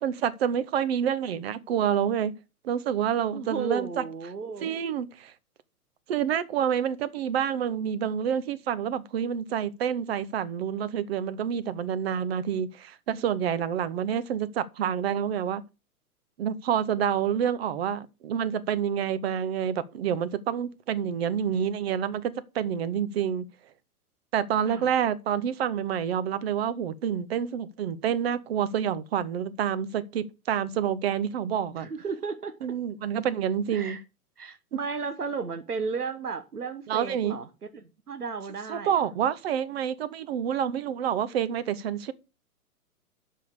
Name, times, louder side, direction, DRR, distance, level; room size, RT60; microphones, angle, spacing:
voice 1, 0.0-2.4 2.6-4.0 4.6-5.3 6.1-15.6 16.4-23.5 24.3-31.9 32.6-34.0 36.9-37.4 38.7-42.1, right 8 dB, 40° right, 0.9 m, -28 dB
voice 2, 3.3-4.7 24.7-24.9 31.8-32.5 33.7-34.0 34.4-37.5 38.1-39.0, right 5 dB, 85° right, 1.4 m, -34 dB
7.4 x 5.5 x 6.8 m
figure-of-eight pair, 120°, 45 cm